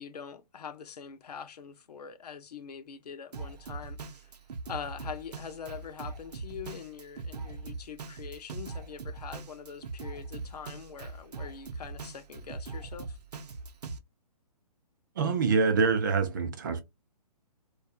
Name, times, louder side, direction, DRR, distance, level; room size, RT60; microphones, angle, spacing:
voice 1, 0.0-4.3 4.7-13.2, left 7 dB, 75° left, 0.6 m, -43 dB
Drum kit, 3.3-14.0, right 3 dB, 75° right, 0.7 m, -41 dB
voice 2, 15.2-16.8, right 5 dB, 30° right, 0.4 m, -25 dB
2.7 x 2.3 x 2.3 m
hypercardioid pair, 165°, 20 cm